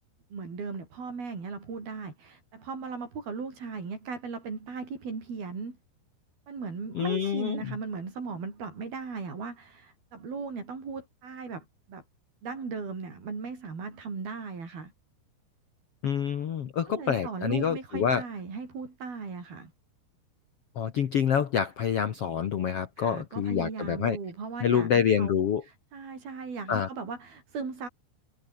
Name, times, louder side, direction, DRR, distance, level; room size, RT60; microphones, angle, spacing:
voice 1, 0.3-5.8 6.5-12.0 12.4-14.9 16.9-19.7 23.0-25.4 25.6-27.9, right 4 dB, 60° right, 8.2 m, -37 dB
voice 2, 6.9-7.7 16.0-18.2 20.7-24.2 24.6-25.6 26.7-26.9, left 8 dB, 80° left, 1.3 m, -27 dB
omnidirectional pair, 5.0 m